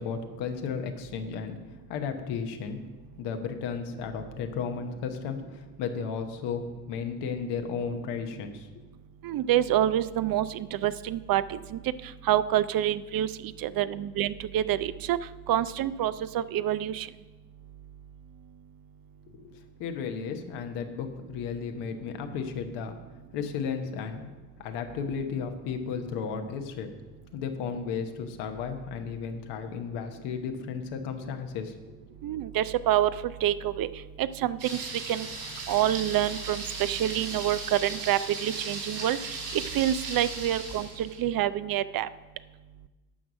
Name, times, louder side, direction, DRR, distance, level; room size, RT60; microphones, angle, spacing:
voice 1, 0.0-1.6 1.9-2.8 3.2-8.8 19.3-23.0 23.3-24.3 24.6-26.9 27.3-31.7 32.2-32.3, left 6 dB, 80° left, 6 dB, 1.0 m, -34 dB
voice 2, 9.2-11.8 12.3-13.3 13.6-15.2 15.5-17.1 32.2-33.9 34.2-35.3 35.7-39.2 39.5-42.1, right 12 dB, 60° right, 15 dB, 0.5 m, -27 dB
Thunder, 34.6-41.2, right 3 dB, 75° right, 3.9 m, -37 dB
9.9 x 6.1 x 6.1 m, 1.2 s
hypercardioid pair, 45°, 41 cm